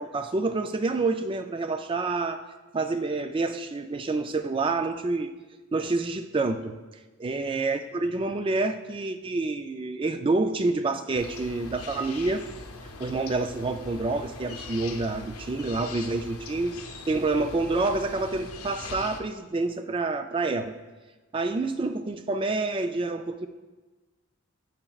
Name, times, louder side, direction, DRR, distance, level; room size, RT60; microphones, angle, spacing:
voice 1, 0.0-2.4 2.7-5.3 5.7-6.8 7.2-12.5 13.0-20.7 21.3-23.5, right 3 dB, 25° right, 9 dB, 0.3 m, -28 dB
sound 1, 11.2-19.2, left 3 dB, 90° left, 0.7 m, -41 dB
8.8 x 7.9 x 2.3 m, 1.2 s
head